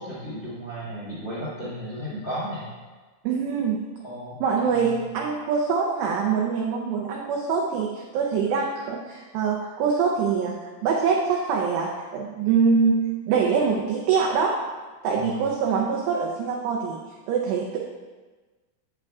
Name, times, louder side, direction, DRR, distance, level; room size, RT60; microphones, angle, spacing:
voice 1, 0.0-2.7 4.0-5.0 15.1-15.4, equal, 50° left, -8 dB, 1.3 m, -34 dB
voice 2, 3.2-3.9 4.4-10.5 10.8-14.6 15.0-17.0 17.3-17.8, right 5 dB, 85° right, -1 dB, 2.4 m, -24 dB
8.7 x 8.4 x 2.4 m, 1.3 s
omnidirectional pair, 5.7 m